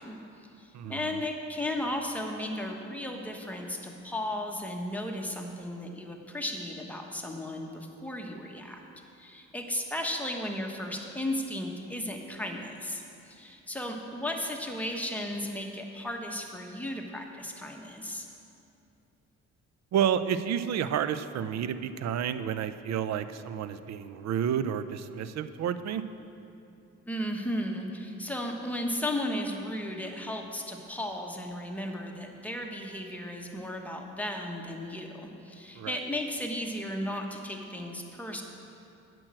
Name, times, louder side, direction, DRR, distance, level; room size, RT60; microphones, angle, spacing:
voice 1, 0.0-8.8 9.2-18.3 27.1-38.4, left 1 dB, 5° left, 1 dB, 1.2 m, -35 dB
voice 2, 0.7-1.2 19.9-26.0 35.8-36.0, right 8 dB, 60° right, 12 dB, 0.5 m, -30 dB
8.9 x 6.2 x 7.6 m, 2.7 s
cardioid pair, 90°, 30 cm